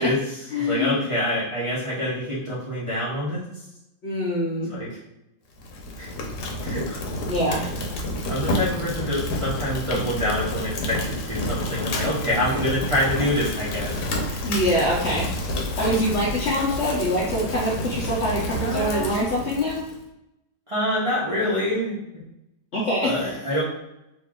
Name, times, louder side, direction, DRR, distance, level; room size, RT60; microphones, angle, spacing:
voice 1, 0.0-3.4 4.7-5.0 6.0-6.1 6.6-7.0 7.4-7.5 8.3-14.4 18.6-19.1 20.7-22.0 23.0-23.6, left 1 dB, 35° right, -10 dB, 0.5 m, -26 dB
voice 2, 0.5-1.0 4.0-4.7 7.3-7.6 14.4-15.2 15.8-19.8 22.7-23.3, equal, 85° left, -5 dB, 0.5 m, -24 dB
Fire, 5.6-20.0, left 1 dB, 65° left, 1.2 m, -29 dB
3.1 x 2.8 x 3.6 m, 0.87 s
omnidirectional pair, 2.1 m